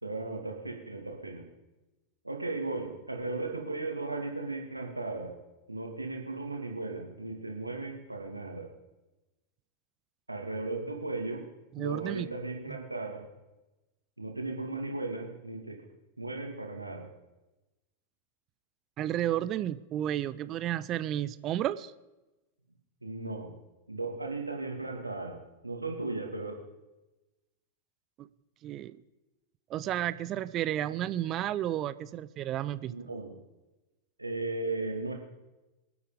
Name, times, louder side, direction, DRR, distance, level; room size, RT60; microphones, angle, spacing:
voice 1, 0.0-1.5 2.2-5.4 5.7-8.7 10.3-11.5 11.8-13.3 14.2-15.8 16.2-17.1 23.0-23.5 23.9-26.6 32.8-33.3 34.2-35.1, right 2 dB, 85° right, 3 dB, 2.4 m, -36 dB
voice 2, 11.7-12.3 19.0-21.9 28.2-28.3 28.6-29.0 29.7-32.9, right 12 dB, 35° right, 16 dB, 0.5 m, -32 dB
24.0 x 8.2 x 5.1 m, 1.0 s
figure-of-eight pair, 90°, 0 cm